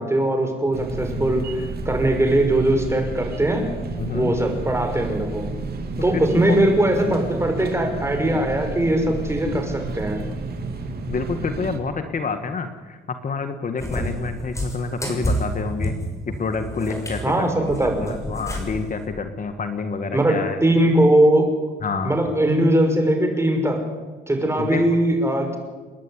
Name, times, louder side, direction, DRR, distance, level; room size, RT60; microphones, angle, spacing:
voice 1, 0.0-3.7 4.1-5.5 6.0-10.2 17.2-18.1 20.1-21.5 22.0-23.8 24.3-25.6, right 1 dB, 15° right, 4 dB, 5.8 m, -20 dB
sound 1, 0.7-11.8, right 3 dB, 50° right, 3.3 m, -31 dB
voice 2, 3.9-4.3 6.1-6.6 11.1-15.9 16.4-17.7 18.0-20.6 21.8-22.2 24.6-24.8, left 4 dB, 40° left, 7 dB, 1.9 m, -28 dB
Cat, 13.8-18.9, equal, 15° left, 6.4 m, -29 dB
30.0 x 10.5 x 10.0 m, 1.4 s
cardioid pair, 90°, 20 cm